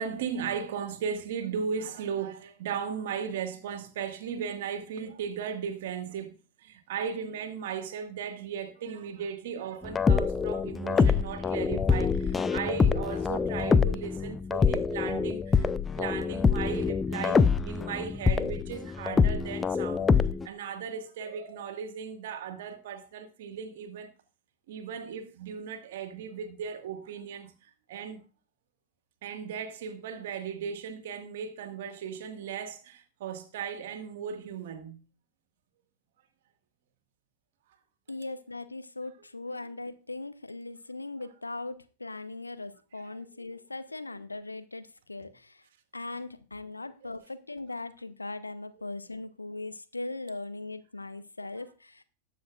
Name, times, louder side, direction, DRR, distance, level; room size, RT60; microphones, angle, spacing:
voice 1, 0.0-24.1 24.7-28.2 29.2-35.0 43.1-43.3 47.0-47.1, right 7 dB, 55° right, 1.8 m, -37 dB
sound 1, 9.8-20.5, left 5 dB, 15° left, 0.5 m, -25 dB
voice 2, 38.1-45.6 45.9-52.0, left 2 dB, 80° left, 0.7 m, -39 dB
19.5 x 6.9 x 2.5 m
figure-of-eight pair, 90°, 0 cm